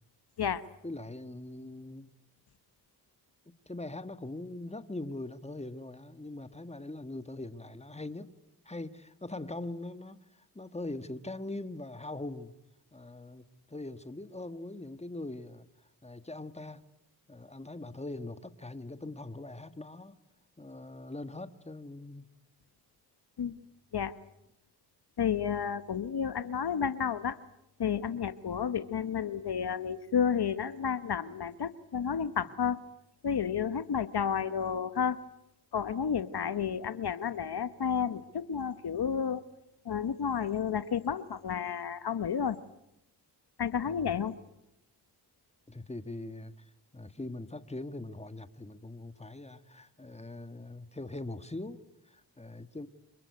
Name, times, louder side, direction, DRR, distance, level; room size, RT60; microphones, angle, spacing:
voice 1, 0.8-2.2 3.4-8.4 8.6-12.5 12.9-15.7 16.0-16.9 17.3-20.2 20.6-22.3 43.9-44.1 45.7-46.5 46.9-52.9, left 2 dB, 15° left, 1.7 m, -42 dB
voice 2, 25.2-27.4 27.8-32.8 33.2-35.2 35.7-39.4 39.8-42.6 43.6-44.3, left 7 dB, 70° left, 1.1 m, -31 dB
27.0 x 23.0 x 9.6 m
cardioid pair, 45°, 41 cm